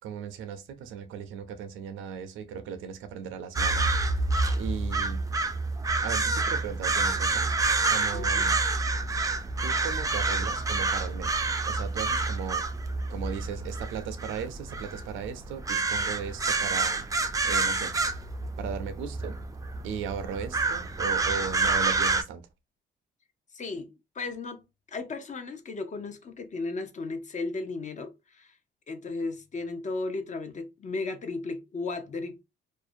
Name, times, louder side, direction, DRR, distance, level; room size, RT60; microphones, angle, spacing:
voice 1, 0.0-4.2 4.6-5.2 6.0-7.6 7.9-8.6 9.6-11.4 11.7-12.6 13.1-17.0 17.4-17.9 18.6-19.4 19.8-22.4, right 7 dB, 85° right, 0.5 m, -37 dB
sound 1, 3.5-22.2, right 3 dB, 15° right, 0.3 m, -28 dB
voice 2, 23.5-28.6 28.9-32.4, left 3 dB, 40° left, 0.5 m, -35 dB
2.5 x 2.0 x 2.5 m
cardioid pair, 90°, 20 cm